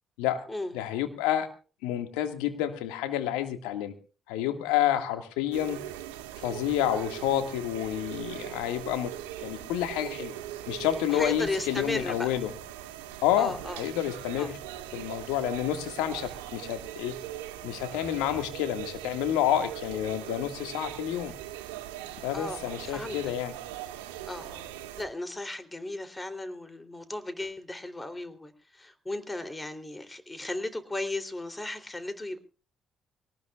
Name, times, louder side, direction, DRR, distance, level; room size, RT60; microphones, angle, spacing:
voice 1, 0.7-1.5 1.8-3.9 4.3-5.8 6.4-9.1 9.4-10.4 10.7-12.5 13.2-14.6 14.9-17.1 17.6-21.3 22.2-23.5, left 11 dB, 80° left, 7 dB, 1.9 m, -29 dB
sound 1, 5.5-25.0, right 12 dB, 85° right, 1.6 m, -40 dB
voice 2, 11.1-12.3 13.4-13.9 14.4-14.5 22.3-23.3 24.3-24.7 25.0-32.4, left 2 dB, 20° left, 8 dB, 3.2 m, -35 dB
24.5 x 18.5 x 2.4 m, 0.37 s
hypercardioid pair, 50°, 0 cm